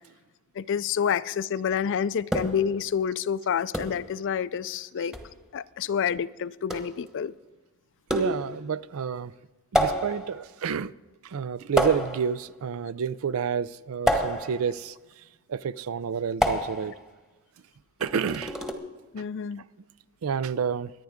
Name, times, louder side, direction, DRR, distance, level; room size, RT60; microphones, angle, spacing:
voice 1, 0.6-5.1 5.5-7.3 19.1-19.6, left 7 dB, 60° left, 0.4 m, -28 dB
sound 1, 2.3-2.7 3.7-4.1 5.1-5.3 6.7-7.0 8.1-8.6 9.7-10.4 11.8-12.4 14.1-14.7 16.4-17.0 18.0-18.7, equal, ahead, 1.2 m, -28 dB
voice 2, 8.1-9.3 9.7-10.9 11.2-15.0 15.5-16.9 18.0-18.6 19.2-19.3 20.2-20.9, right 7 dB, 70° right, 0.4 m, -29 dB
24.0 x 10.5 x 3.6 m
head